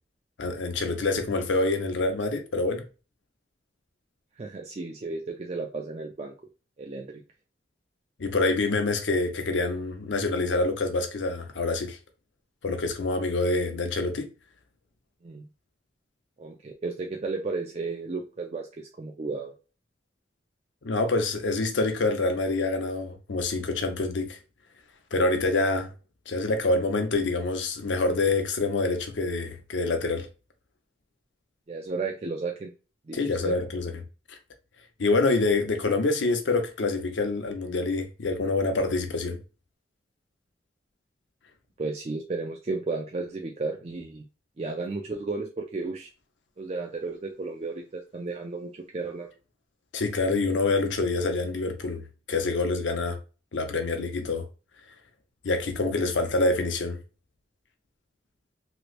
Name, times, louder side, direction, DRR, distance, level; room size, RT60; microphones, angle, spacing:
voice 1, 0.4-2.8 8.2-12.0 12.6-14.3 20.8-24.4 25.1-25.9 26.3-30.3 33.1-33.9 34.3-34.4 35.0-39.4 49.9-52.0 52.3-53.2 53.5-54.5 55.4-57.0, left 3 dB, 85° left, 0.7 m, -26 dB
voice 2, 4.4-6.3 6.8-7.1 15.2-15.5 16.4-19.5 31.7-32.7 33.1-33.5 41.8-44.2 44.6-46.1 46.6-49.3, right 3 dB, 35° right, 0.4 m, -33 dB
3.2 x 2.9 x 2.5 m
head